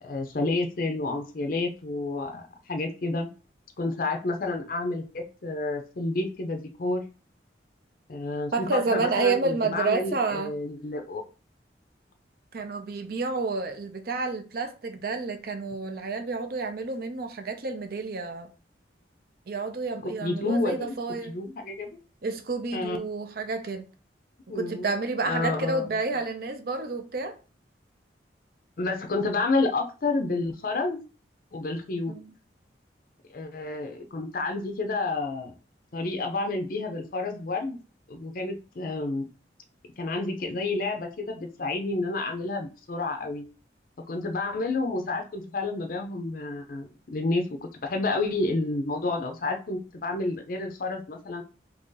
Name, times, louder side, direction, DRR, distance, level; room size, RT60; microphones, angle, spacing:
voice 1, 0.0-3.3 3.8-7.0 8.1-11.2 20.0-20.9 21.2-21.9 22.7-23.0 24.5-24.9 25.3-25.8 28.8-31.0 31.5-32.1 33.3-35.5 35.9-37.8 38.1-39.3 40.0-43.4 44.1-51.4, left 2 dB, 50° left, 0.5 m, -30 dB
voice 2, 8.5-10.5 12.5-18.5 19.5-21.3 22.2-23.8 24.5-27.4 32.1-32.3, right 3 dB, 55° right, 0.5 m, -30 dB
2.9 x 2.6 x 3.7 m
head